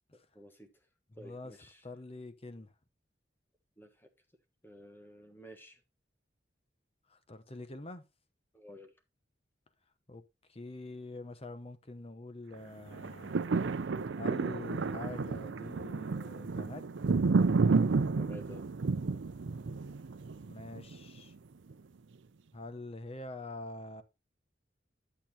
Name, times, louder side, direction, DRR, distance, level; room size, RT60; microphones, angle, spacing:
voice 1, 0.3-0.8 1.1-1.8 3.8-4.1 4.6-5.8 8.5-8.9 18.2-18.6, left 1 dB, 10° left, 1.3 m, -52 dB
voice 2, 1.2-1.5 1.8-2.7 7.1-8.0 10.1-10.2 10.5-13.4 14.2-16.9 20.5-21.3 22.5-24.0, left 2 dB, 35° left, 0.9 m, -45 dB
sound 1, 12.9-21.2 21.7-21.8, right 4 dB, 90° right, 0.5 m, -31 dB
11.0 x 6.8 x 2.9 m
head